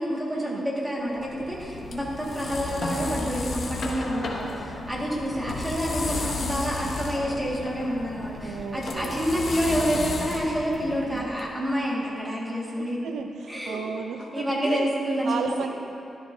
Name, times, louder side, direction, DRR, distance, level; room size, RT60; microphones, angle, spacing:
voice 1, 0.0-13.0 13.5-13.8 14.3-15.5, equal, 5° right, -6 dB, 1.9 m, -28 dB
sound 1, 1.1-11.4, left 2 dB, 50° left, 1.0 m, -33 dB
voice 2, 4.1-4.7 8.4-9.5 10.9-11.3 12.8-14.9 15.2-15.7, right 5 dB, 90° right, 6 dB, 0.5 m, -35 dB
12.5 x 12.5 x 2.7 m, 2.7 s
wide cardioid pair, 170°, 0 cm